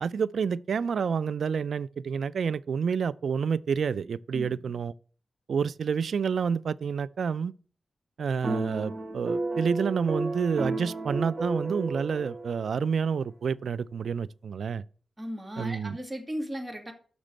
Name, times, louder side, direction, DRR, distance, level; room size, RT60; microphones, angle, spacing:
voice 1, 0.0-4.9 5.5-7.5 8.2-14.8 15.6-16.0, right 6 dB, 75° right, 0.3 m, -29 dB
voice 2, 4.3-4.8 15.2-16.9, equal, 20° right, 2.2 m, -36 dB
sound 1, 8.4-12.9, right 2 dB, 40° right, 1.5 m, -32 dB
6.8 x 5.9 x 7.5 m
cardioid pair, 65°, 0 cm